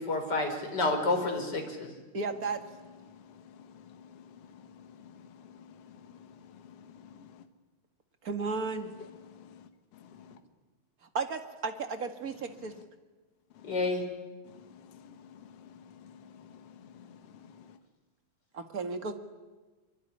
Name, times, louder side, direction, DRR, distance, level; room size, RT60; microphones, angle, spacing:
voice 1, 0.0-1.9 13.6-14.0, left 2 dB, 35° left, 4 dB, 5.2 m, -29 dB
voice 2, 2.1-2.6 8.2-8.9 11.1-12.7 18.5-19.1, right 4 dB, 35° right, 7 dB, 2.0 m, -34 dB
voice 3, 3.5-4.2 4.8-5.1 7.2-7.3 9.4-9.6 10.2-10.3 15.3-15.4 16.0-17.2, left 7 dB, 60° left, 7 dB, 2.3 m, -52 dB
24.5 x 24.0 x 10.0 m, 1.2 s
omnidirectional pair, 3.3 m